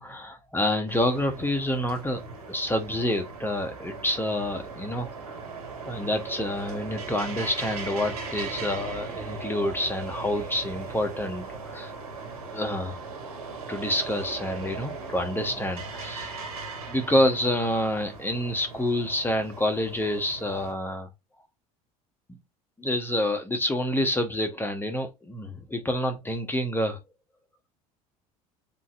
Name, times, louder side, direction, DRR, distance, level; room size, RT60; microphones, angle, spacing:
voice 1, 0.0-2.2 2.5-5.4 5.9-11.9 12.5-13.0 13.7-16.3 16.9-21.1 22.3-22.4 22.8-27.0, left 1 dB, 10° left, 1.1 m, -28 dB
sound 1, 0.9-20.7, right 4 dB, 85° right, 2.0 m, -38 dB
7.3 x 2.8 x 2.6 m
hypercardioid pair, 70°, 19 cm